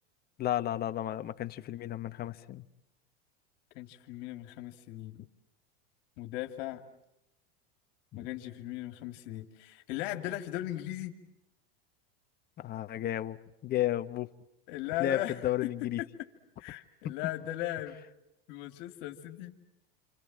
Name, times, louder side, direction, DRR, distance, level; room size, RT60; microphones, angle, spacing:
voice 1, 0.4-2.6 8.1-8.3 12.6-13.4 13.6-14.3 15.0-16.0, left 12 dB, 30° left, 1.2 m, -32 dB
voice 2, 3.7-5.2 6.2-6.8 8.1-11.2 14.7-15.4 15.6-15.7 16.0-16.1 16.6-18.0 18.5-19.5, left 14 dB, 60° left, 2.7 m, -37 dB
29.0 x 25.5 x 7.5 m
supercardioid pair, 125°, 30 cm